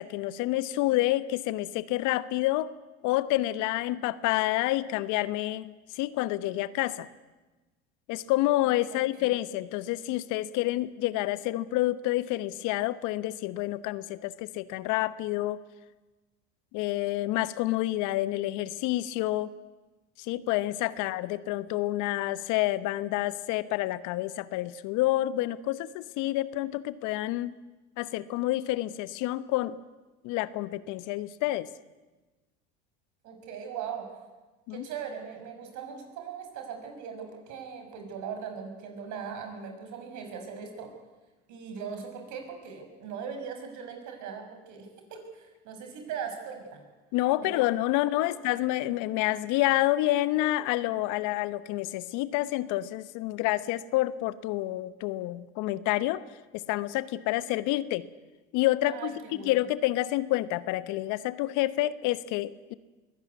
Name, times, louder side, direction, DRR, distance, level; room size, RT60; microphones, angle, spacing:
voice 1, 0.0-2.7 3.0-7.1 8.1-15.6 16.7-19.5 20.3-27.6 28.0-29.7 30.2-31.7 34.7-34.9 47.1-56.2 56.5-58.1 58.5-59.1 59.4-62.7, left 16 dB, 60° left, 15 dB, 1.1 m, -28 dB
voice 2, 8.9-9.3 33.2-34.1 34.7-40.9 41.5-46.8 47.4-47.6 48.2-48.4 58.9-59.5, right 7 dB, 60° right, 5 dB, 6.1 m, -40 dB
22.5 x 17.0 x 9.5 m, 1.2 s
hypercardioid pair, 80°, 33 cm